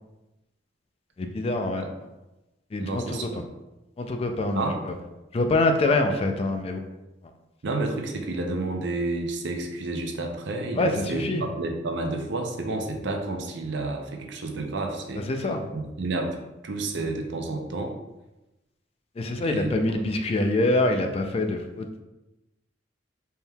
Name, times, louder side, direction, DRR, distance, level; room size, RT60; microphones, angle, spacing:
voice 1, 1.2-1.8 2.7-3.3 4.0-4.9 5.3-6.9 10.8-11.4 15.3-15.6 19.2-22.0, left 2 dB, 30° left, 5 dB, 0.3 m, -25 dB
voice 2, 2.8-3.4 4.5-4.8 7.6-16.4 16.6-17.9 19.4-20.0, right 2 dB, 65° right, 3 dB, 0.6 m, -30 dB
4.3 x 3.5 x 2.3 m, 0.99 s
head